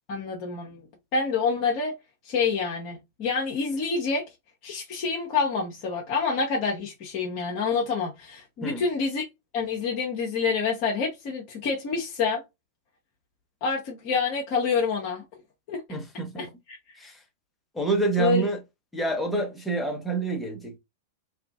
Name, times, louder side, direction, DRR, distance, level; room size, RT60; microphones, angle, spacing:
voice 1, 0.1-0.8 1.1-2.0 2.2-4.2 4.6-9.2 9.5-12.4 13.6-15.2 15.7-15.8 16.4-16.8 18.2-18.5, left 5 dB, 40° left, 0.7 m, -27 dB
voice 2, 15.9-16.5 17.0-17.2 17.7-18.6 18.9-20.8, right 3 dB, 5° left, 0.8 m, -27 dB
2.7 x 2.4 x 2.3 m
figure-of-eight pair, 95°, 0 cm